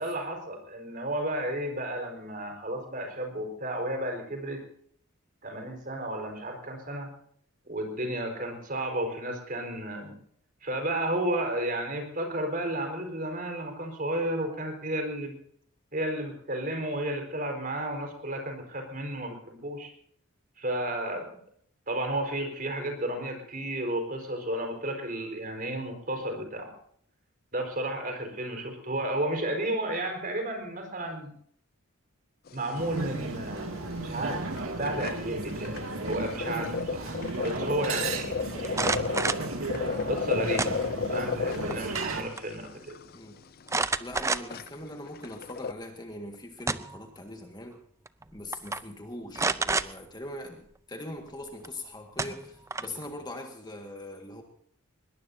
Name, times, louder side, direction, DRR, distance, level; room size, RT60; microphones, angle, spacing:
voice 1, 0.0-4.6 5.4-7.1 7.7-10.2 10.6-15.4 15.9-19.9 20.6-21.4 21.9-26.7 27.5-31.3 32.5-38.5 40.1-40.7 41.1-43.0, right 1 dB, 40° right, 4 dB, 4.6 m, -32 dB
sound 1, 32.5-32.9 33.2-33.3 33.6-33.8 34.3-34.4 34.6-45.7, left 5 dB, 45° left, 0.5 m, -34 dB
sound 2, 32.7-42.2, right 2 dB, 65° right, 2.4 m, -34 dB
voice 2, 38.5-39.2 43.1-43.4 44.0-47.8 48.3-54.4, left 1 dB, 20° left, 4 dB, 1.8 m, -42 dB
sound 3, 38.6-39.5 40.6-41.2 41.6-42.1 42.4-42.5 43.7-44.7 45.2-45.3 46.3-47.1 48.1-48.2 48.5-48.8 49.3-49.9 51.6-51.7 52.2-53.0, right 3 dB, 15° right, 0.5 m, -29 dB
21.5 x 20.5 x 2.8 m, 0.63 s
head